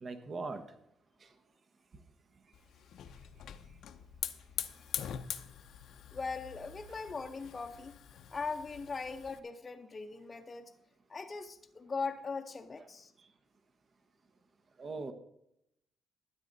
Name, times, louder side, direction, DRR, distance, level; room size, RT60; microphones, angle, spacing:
voice 1, 0.0-0.6 14.8-15.1, right 3 dB, 45° right, 1.2 m, -39 dB
Hiss / Fire, 2.5-9.4, left 9 dB, 75° left, 0.7 m, -44 dB
voice 2, 6.1-7.9 8.3-10.7 11.1-13.1, left 4 dB, 30° left, 0.7 m, -40 dB
12.5 x 9.6 x 4.0 m
cardioid pair, 90°, 0 cm